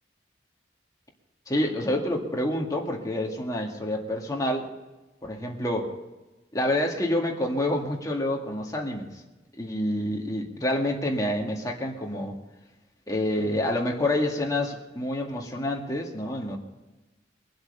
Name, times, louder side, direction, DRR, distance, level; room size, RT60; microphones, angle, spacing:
voice 1, 1.5-4.6 5.2-5.9 6.5-9.1 9.6-12.4 13.1-16.6, left 1 dB, 20° left, 0 dB, 1.9 m, -28 dB
22.5 x 7.8 x 6.8 m, 1.1 s
head